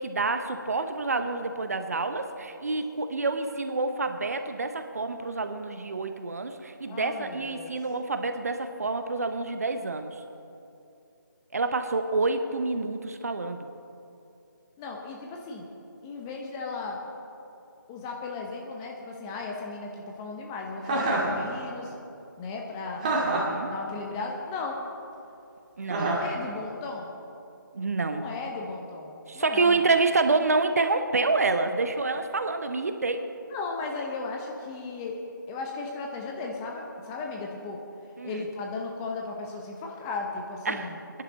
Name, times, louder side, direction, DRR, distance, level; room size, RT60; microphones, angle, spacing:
voice 1, 0.0-10.2 11.5-13.7 23.0-23.7 25.8-26.2 27.7-28.2 29.3-33.2 38.2-38.3 40.7-40.9, right 3 dB, 50° right, 8 dB, 0.9 m, -28 dB
voice 2, 6.9-7.8 14.8-15.7 16.0-17.0 17.9-21.9 22.4-23.0 23.6-24.8 26.2-27.1 28.1-29.8 33.5-37.8 38.2-41.0, left 3 dB, 10° left, 0 dB, 0.9 m, -36 dB
Chuckle chortle, 20.8-21.4 23.0-23.6 25.9-26.3, right 2 dB, 20° right, 2.2 m, -26 dB
23.5 x 11.0 x 4.1 m, 2.7 s
figure-of-eight pair, 155°, 11 cm